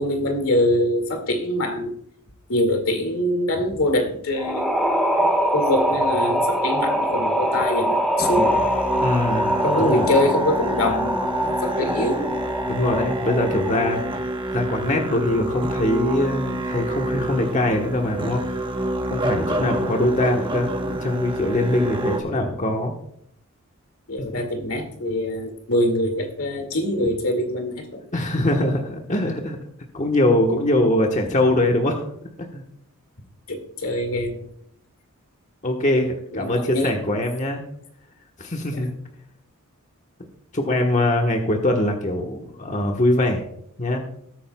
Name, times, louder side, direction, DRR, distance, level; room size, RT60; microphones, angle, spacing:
voice 1, 0.0-1.9 2.5-4.7 5.5-8.6 9.6-12.3 17.1-17.3 24.1-28.0 33.5-34.5 36.3-37.2 38.7-38.9, left 1 dB, 80° left, 4 dB, 2.2 m, -24 dB
sound 1, 4.4-14.1, equal, ahead, 1.5 m, -23 dB
Musical instrument, 8.2-22.2, right 1 dB, 20° right, 1.1 m, -28 dB
voice 2, 9.0-9.5 9.8-10.1 12.7-14.0 14.5-18.4 19.1-22.9 24.3-24.4 28.1-29.6 29.9-32.1 32.5-32.6 35.6-37.6 38.4-38.9 40.5-43.5 43.8-44.0, left 1 dB, 35° left, 2 dB, 1.2 m, -22 dB
19.5 x 8.9 x 2.3 m, 0.69 s
head